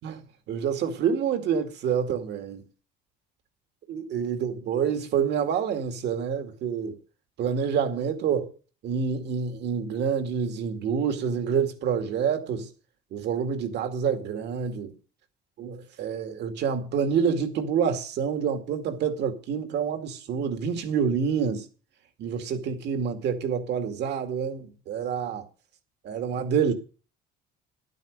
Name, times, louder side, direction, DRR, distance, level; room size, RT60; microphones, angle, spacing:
voice 1, 0.5-2.6 3.9-7.0 7.4-8.5 8.8-12.7 13.1-14.9 15.6-21.6 22.2-25.4 26.0-26.7, right 7 dB, 60° right, 2.3 m, -27 dB
12.0 x 9.4 x 6.7 m
cardioid pair, 135°, 20 cm